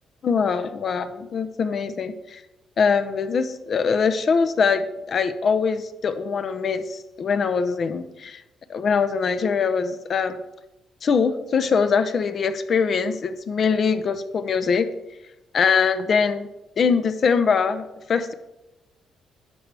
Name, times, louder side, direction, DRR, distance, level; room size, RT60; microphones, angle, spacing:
voice 1, 0.2-2.4 2.8-8.4 8.7-10.4 11.0-14.9 15.5-16.5 16.8-18.3, left 5 dB, 50° left, 11 dB, 0.7 m, -22 dB
10.5 x 6.6 x 3.4 m, 0.96 s
cardioid pair, 90°, 0 cm